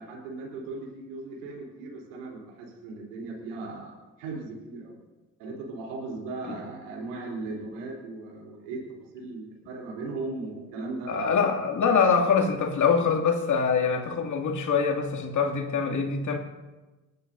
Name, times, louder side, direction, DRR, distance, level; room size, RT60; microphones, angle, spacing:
voice 1, 0.0-5.0 5.4-11.4, right 3 dB, 80° right, -2 dB, 3.9 m, -37 dB
voice 2, 11.1-16.4, left 5 dB, 50° left, 3 dB, 2.6 m, -24 dB
29.0 x 12.0 x 2.7 m, 1.2 s
hypercardioid pair, 55°, 37 cm